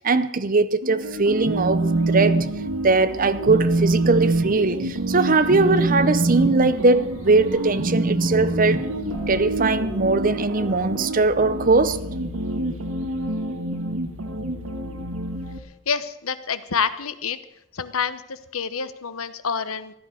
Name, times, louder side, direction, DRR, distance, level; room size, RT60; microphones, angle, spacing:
voice 1, 0.0-2.5 2.8-8.9 9.3-12.0, right 3 dB, 40° right, 0.7 m, -20 dB
sound 1, 0.8-15.6, right 1 dB, 85° right, 1.6 m, -29 dB
Telephone, 1.4-2.5 2.8-3.1 3.4-9.5, right 2 dB, 60° right, 1.3 m, -24 dB
sound 2, 5.1-11.5, equal, 25° left, 7.6 m, -43 dB
voice 2, 15.9-17.4 17.7-20.0, left 6 dB, 85° left, 1.0 m, -27 dB
15.0 x 11.0 x 6.3 m
head